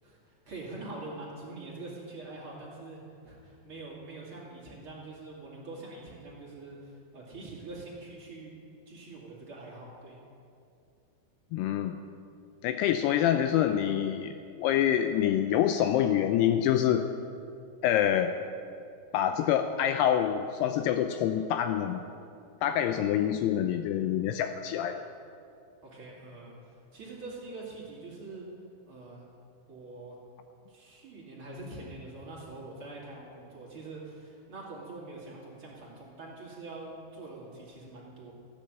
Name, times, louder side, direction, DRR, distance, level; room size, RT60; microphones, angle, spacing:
voice 1, 0.0-8.5 8.9-10.2 25.8-28.5 28.9-29.2 29.7-30.2 30.7-38.3, right 2 dB, 35° right, -5 dB, 2.6 m, -44 dB
voice 2, 11.5-12.0 12.6-14.3 14.6-17.1 17.8-18.3 19.1-22.0 22.6-25.0, left 10 dB, 85° left, 8 dB, 2.4 m, -26 dB
14.5 x 9.0 x 7.7 m, 2.5 s
omnidirectional pair, 5.1 m